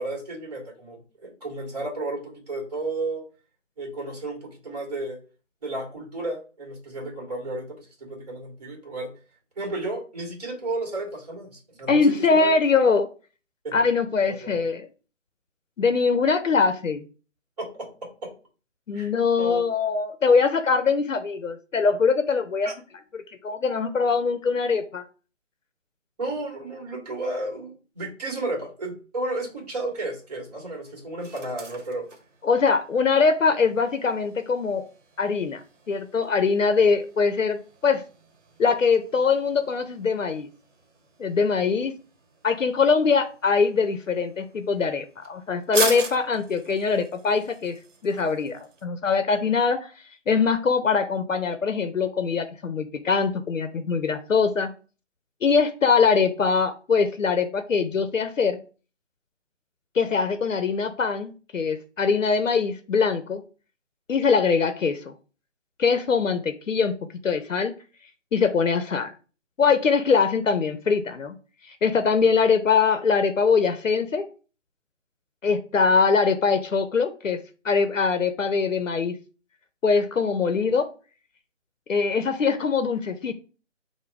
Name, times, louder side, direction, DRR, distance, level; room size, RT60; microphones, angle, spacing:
voice 1, 0.0-3.2 3.8-5.2 5.6-9.1 9.6-12.5 13.6-13.8 14.2-14.6 17.6-17.9 18.2-18.3 18.9-19.1 19.4-19.7 22.6-22.7 26.2-32.1, right 2 dB, 30° right, 1 dB, 1.5 m, -33 dB
voice 2, 11.9-13.1 13.7-14.9 15.8-17.0 18.9-22.7 23.1-25.0 32.4-34.8 35.2-35.6 35.9-38.0 38.6-40.5 41.2-41.9 42.4-49.9 50.3-54.7 55.4-58.6 59.9-63.4 64.1-65.1 65.8-66.9 67.2-67.7 68.3-69.1 69.6-71.4 71.6-74.3 75.4-77.4 77.6-79.2 79.8-80.9 81.9-83.3, left 5 dB, 80° left, 9 dB, 0.7 m, -22 dB
sound 1, 29.3-48.8, right 3 dB, 70° right, 1.0 m, -40 dB
5.1 x 2.2 x 4.6 m, 0.37 s
figure-of-eight pair, 155°, 38 cm